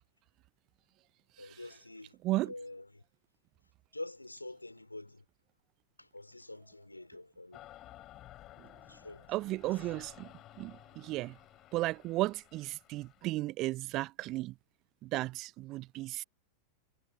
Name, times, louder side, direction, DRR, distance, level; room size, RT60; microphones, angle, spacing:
voice 1, 1.4-2.2 2.4-3.0 3.9-5.2 6.0-7.7 8.9-9.3, left 2 dB, 85° left, 3.0 m, -46 dB
sound 1, 7.5-13.3, left 14 dB, 35° left, 2.9 m, -55 dB
voice 2, 9.3-10.3 10.6-11.4 11.7-14.5 15.0-16.2, right 18 dB, 40° right, 0.6 m, -34 dB
figure-of-eight pair, 90°, 0 cm